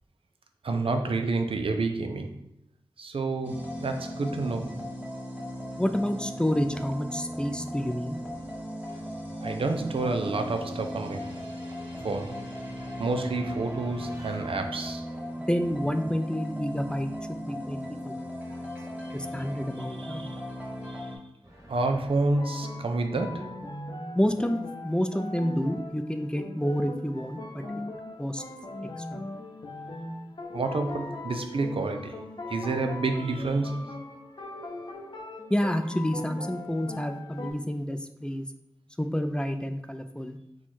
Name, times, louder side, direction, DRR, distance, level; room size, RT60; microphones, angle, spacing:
voice 1, 0.6-2.4 3.0-4.8 9.4-11.4 12.0-12.5 13.0-15.0 20.0-20.4 20.9-21.1 21.7-23.5 30.5-32.2 32.5-33.9, right 3 dB, 80° right, 6 dB, 0.4 m, -29 dB
sound 1, 3.4-21.2, equal, 15° right, 1.1 m, -37 dB
voice 2, 5.8-8.2 15.5-18.6 19.1-20.3 24.1-27.4 28.2-28.4 29.1-29.2 35.5-38.5 39.0-40.4, equal, 10° left, 7 dB, 0.3 m, -29 dB
sound 2, 8.3-15.0 21.4-23.4, right 1 dB, 30° right, 1.4 m, -51 dB
sound 3, 22.1-37.5, left 2 dB, 60° left, 0.6 m, -40 dB
4.5 x 2.3 x 4.3 m, 0.78 s
wide cardioid pair, 55°, 9 cm